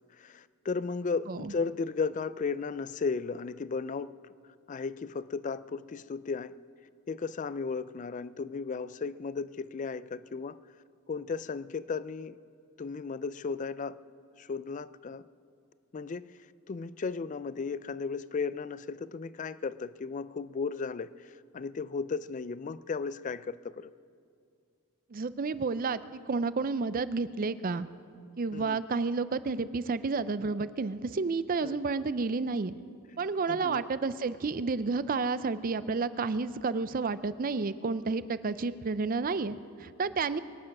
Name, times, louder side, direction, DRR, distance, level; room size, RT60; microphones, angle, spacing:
voice 1, 0.2-4.1 4.7-6.6 7.1-10.6 11.1-12.4 12.8-14.0 14.4-15.2 15.9-16.3 16.7-21.1 21.5-23.9 28.5-28.8 31.6-31.8 33.5-33.8, left 4 dB, 35° left, 16 dB, 0.3 m, -35 dB
voice 2, 25.1-27.9 28.4-32.7 33.2-40.4, right 4 dB, 40° right, 15 dB, 0.4 m, -31 dB
23.0 x 9.8 x 6.0 m, 2.3 s
head